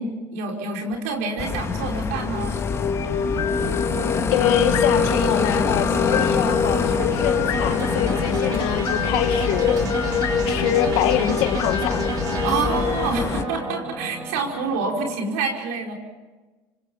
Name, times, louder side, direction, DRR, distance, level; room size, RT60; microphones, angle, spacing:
voice 1, 0.0-2.6 12.4-15.9, right 4 dB, 90° right, 1 dB, 5.1 m, -27 dB
sound 1, 0.9-15.2, right 2 dB, 55° right, 4.4 m, -31 dB
sound 2, 1.4-13.4, left 6 dB, 35° left, 1.8 m, -27 dB
sound 3, 2.1-14.3, left 6 dB, 55° left, 2.5 m, -26 dB
voice 2, 4.3-12.1, left 11 dB, 80° left, 8 dB, 2.0 m, -25 dB
26.0 x 26.0 x 5.7 m, 1.2 s
supercardioid pair, 95°, 8 cm